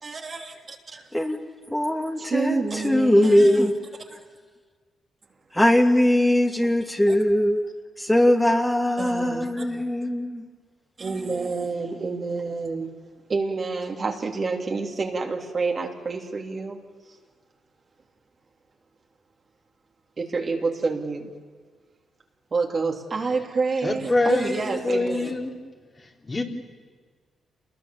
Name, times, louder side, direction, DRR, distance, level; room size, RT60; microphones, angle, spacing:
voice 1, 0.0-1.1 2.2-3.6 7.1-7.2 8.4-8.5 9.0-9.6 11.0-12.9 13.3-16.8 20.2-21.3 22.5-25.3, right 4 dB, 45° right, 3.2 m, -28 dB
voice 2, 1.7-3.7 5.5-7.6 8.0-10.4, left 1 dB, 10° left, 2.6 m, -20 dB
voice 3, 23.8-25.6 26.2-26.4, left 2 dB, 35° left, 4.0 m, -24 dB
28.0 x 21.5 x 7.3 m
supercardioid pair, 55°, 0 cm